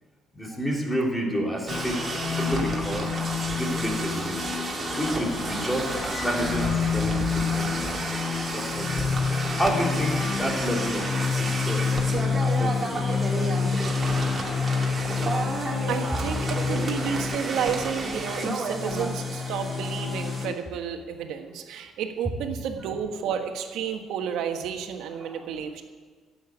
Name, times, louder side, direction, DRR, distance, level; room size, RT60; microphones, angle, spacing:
voice 1, 0.3-3.1 3.6-4.5 5.0-9.2 9.6-11.1 11.4-14.3 22.5-22.6 25.2-25.5, equal, 5° left, -1 dB, 3.1 m, -31 dB
sound 1, 1.7-20.6, left 6 dB, 45° left, 0.3 m, -29 dB
sound 2, 1.7-19.1, right 3 dB, 30° right, 2.5 m, -32 dB
sound 3, 4.9-20.5, right 2 dB, 10° right, 4.9 m, -40 dB
voice 2, 15.9-25.8, right 7 dB, 80° right, 5 dB, 1.4 m, -31 dB
12.0 x 8.0 x 9.6 m, 1.5 s
cardioid pair, 110°, 0 cm